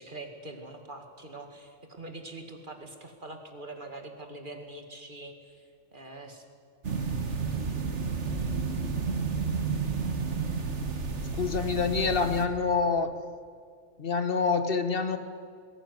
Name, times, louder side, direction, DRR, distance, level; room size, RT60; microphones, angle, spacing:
voice 1, 0.0-6.4, right 2 dB, 40° right, 4 dB, 2.3 m, -44 dB
sound 1, 6.8-12.5, right 5 dB, 65° right, 1.9 m, -31 dB
voice 2, 11.4-13.1 14.0-15.2, left 5 dB, 45° left, 9 dB, 1.6 m, -26 dB
21.0 x 18.0 x 9.7 m, 2.1 s
omnidirectional pair, 1.3 m